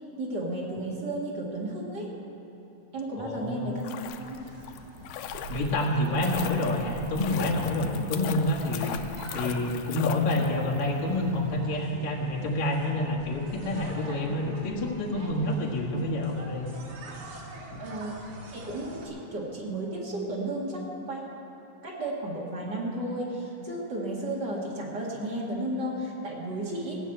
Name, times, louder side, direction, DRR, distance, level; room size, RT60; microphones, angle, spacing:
voice 1, 0.2-2.1 2.9-3.9 4.2-4.4 7.9-8.0 17.8-18.2 18.5-21.2 21.8-27.0, right 1 dB, 40° right, -3 dB, 2.2 m, -33 dB
voice 2, 3.2-3.7 5.5-8.9 9.3-16.7, left 1 dB, 70° left, -3 dB, 3.0 m, -28 dB
sound 1, 3.6-10.8 11.1-11.2, left 9 dB, 90° left, 2.0 m, -39 dB
sound 2, 4.0-19.1, right 2 dB, 85° right, 3.4 m, -44 dB
17.0 x 6.3 x 9.0 m, 2.9 s
omnidirectional pair, 3.3 m